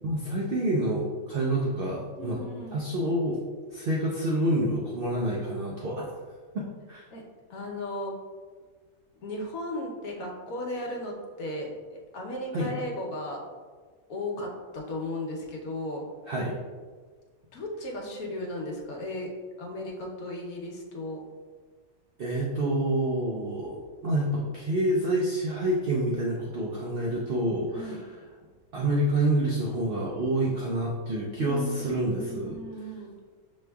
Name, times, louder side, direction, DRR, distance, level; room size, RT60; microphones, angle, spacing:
voice 1, 0.0-2.4 2.7-3.4 3.7-6.1 6.5-7.0 12.5-12.7 16.3-16.5 22.2-23.8 24.0-28.0 28.7-32.6, right 1 dB, 60° right, -3 dB, 0.6 m, -27 dB
voice 2, 2.2-2.8 7.1-7.2 7.5-8.1 9.2-13.4 14.1-16.0 17.5-19.3 19.6-21.2 27.7-28.0 31.3-33.1, left 1 dB, 70° left, -1 dB, 1.2 m, -36 dB
6.2 x 3.1 x 2.2 m, 1.5 s
omnidirectional pair, 1.6 m